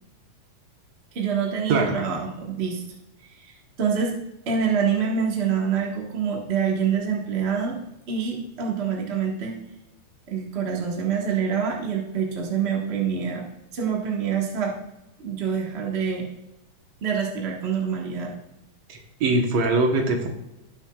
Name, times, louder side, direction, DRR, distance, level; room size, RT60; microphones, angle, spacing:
voice 1, 1.1-2.8 3.2-4.1 4.5-7.8 8.1-9.5 10.3-13.4 13.7-14.8 15.2-16.3 17.0-18.3, right 6 dB, 75° right, -1 dB, 0.5 m, -26 dB
voice 2, 1.7-2.0 18.9-20.3, right 2 dB, 60° right, 2 dB, 2.0 m, -22 dB
17.0 x 6.4 x 2.4 m, 0.92 s
omnidirectional pair, 3.8 m